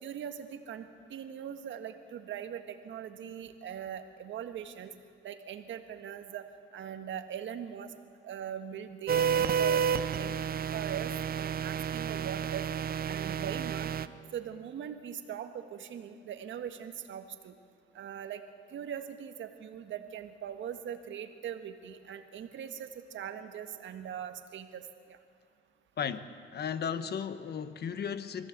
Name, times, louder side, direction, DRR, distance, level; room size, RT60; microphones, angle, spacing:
voice 1, 0.0-4.9 5.2-6.4 6.7-7.9 8.2-9.8 10.2-10.3 10.7-12.7 13.1-13.9 14.3-17.5 17.9-18.4 18.7-24.8 25.1-25.2, right 9 dB, 70° right, 8 dB, 1.6 m, -41 dB
sound 1, 9.1-14.1, right 7 dB, 50° right, 0.7 m, -30 dB
voice 2, 26.0-28.5, left 7 dB, 55° left, 12 dB, 1.1 m, -35 dB
24.0 x 15.0 x 8.1 m, 2.1 s
cardioid pair, 90°, 20 cm